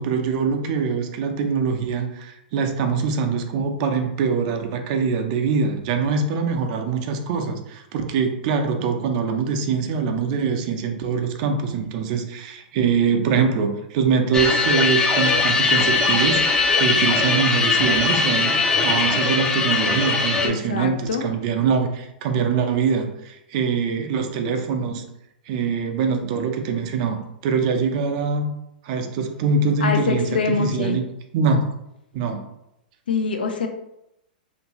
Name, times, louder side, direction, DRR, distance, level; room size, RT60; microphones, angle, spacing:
voice 1, 0.0-16.5 16.7-25.0 25.5-28.5 28.8-31.0 31.3-31.6 32.1-32.4, right 5 dB, 50° right, 4 dB, 0.5 m, -23 dB
sound 1, 14.3-20.5, left 3 dB, 15° left, 0.4 m, -20 dB
voice 2, 20.4-21.2 29.8-31.0 33.1-33.7, left 4 dB, 80° left, 3 dB, 0.5 m, -24 dB
2.6 x 2.5 x 3.0 m, 0.85 s
hypercardioid pair, 115°, 5 cm